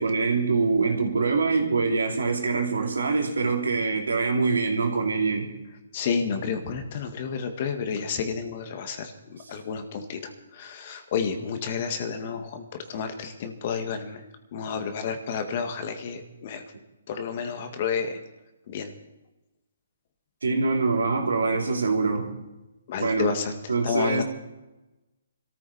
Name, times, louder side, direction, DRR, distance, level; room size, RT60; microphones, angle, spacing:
voice 1, 0.0-5.5 20.4-22.4 23.0-23.3 23.7-24.2, right 4 dB, 85° right, 2 dB, 3.0 m, -24 dB
voice 2, 5.9-10.2 10.5-12.6 12.9-14.2 14.5-16.6 17.1-18.2 18.7-18.9 22.9-23.5 23.8-24.2, left 6 dB, 45° left, 7 dB, 1.9 m, -30 dB
21.5 x 14.0 x 4.3 m, 1.0 s
hypercardioid pair, 145°, 0 cm